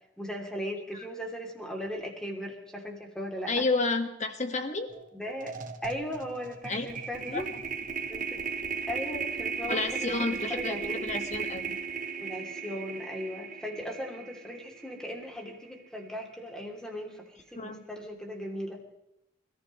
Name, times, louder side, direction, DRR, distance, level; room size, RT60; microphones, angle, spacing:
voice 1, 0.2-3.6 5.1-5.5 5.8-7.5 8.1-8.4 8.9-11.1 12.2-18.8, equal, 5° left, 1 dB, 3.0 m, -38 dB
voice 2, 3.5-4.9 6.7-6.9 7.3-7.4 9.7-11.8 17.6-17.8, left 3 dB, 40° left, 6 dB, 1.7 m, -30 dB
sound 1, 4.9-5.1 5.4-15.6, right 6 dB, 45° right, 1.3 m, -36 dB
28.0 x 14.5 x 3.2 m, 0.85 s
head